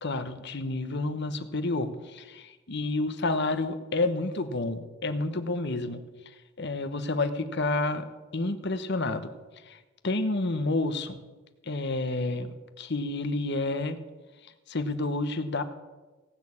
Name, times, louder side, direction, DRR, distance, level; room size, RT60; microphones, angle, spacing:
voice 1, 0.0-6.0 6.6-8.1 8.3-9.3 9.7-9.8 10.0-11.2 11.7-14.0 14.7-15.6, left 2 dB, 50° left, 11 dB, 1.0 m, -29 dB
17.5 x 6.5 x 8.4 m, 1.2 s
head